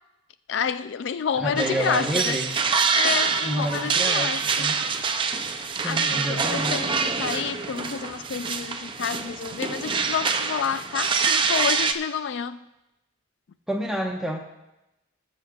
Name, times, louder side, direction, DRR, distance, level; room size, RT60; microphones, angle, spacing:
voice 1, 0.5-2.4 2.9-4.7 5.8-12.6, left 7 dB, 70° left, 12 dB, 0.3 m, -29 dB
voice 2, 1.4-2.5 3.4-4.8 5.7-6.8 13.7-14.4, right 1 dB, 5° right, 0 dB, 1.0 m, -29 dB
sound 1, 1.6-11.9, right 5 dB, 25° right, 0.4 m, -25 dB
18.5 x 7.6 x 2.3 m, 0.94 s
head